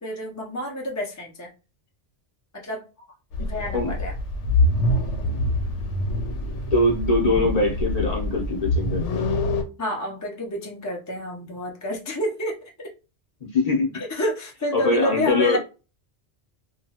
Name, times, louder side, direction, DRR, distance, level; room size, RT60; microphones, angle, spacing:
voice 1, 0.0-1.5 2.5-2.8 3.4-4.1 9.8-12.9 13.9-15.6, left 1 dB, 20° left, 0.4 m, -29 dB
sound 1, 3.3-9.6, left 1 dB, 80° left, 0.9 m, -25 dB
voice 2, 6.7-9.2 13.5-14.0 14.7-15.6, left 2 dB, 35° left, 0.8 m, -22 dB
2.8 x 2.3 x 2.8 m
omnidirectional pair, 1.2 m